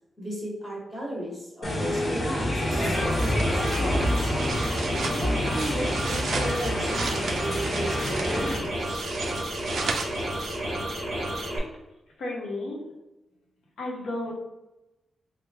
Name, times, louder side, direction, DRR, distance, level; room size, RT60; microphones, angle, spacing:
voice 1, 0.2-4.3 5.0-8.9, right 1 dB, ahead, -6 dB, 0.9 m, -35 dB
sound 1, 1.6-8.6, left 1 dB, 30° left, 0.6 m, -28 dB
sound 2, 2.7-11.6, right 1 dB, 45° right, 0.8 m, -31 dB
sound 3, 3.4-10.8, right 4 dB, 65° right, 0.3 m, -36 dB
voice 2, 12.2-12.8 13.8-14.3, left 2 dB, 90° left, -2 dB, 0.8 m, -32 dB
3.3 x 2.1 x 3.2 m, 0.98 s
wide cardioid pair, 175°, 0 cm